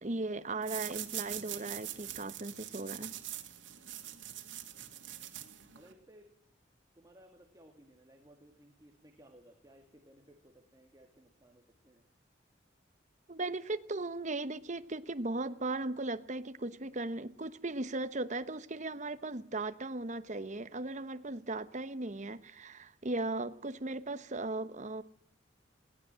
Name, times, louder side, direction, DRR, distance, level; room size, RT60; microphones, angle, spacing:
voice 1, 0.0-3.1 13.3-25.0, right 2 dB, 40° right, 1.0 m, -37 dB
sound 1, 0.6-5.9, right 13 dB, 85° right, 2.5 m, -43 dB
voice 2, 4.7-5.1 5.7-6.3 7.0-12.0, equal, 20° right, 2.1 m, -60 dB
21.0 x 17.5 x 7.6 m
head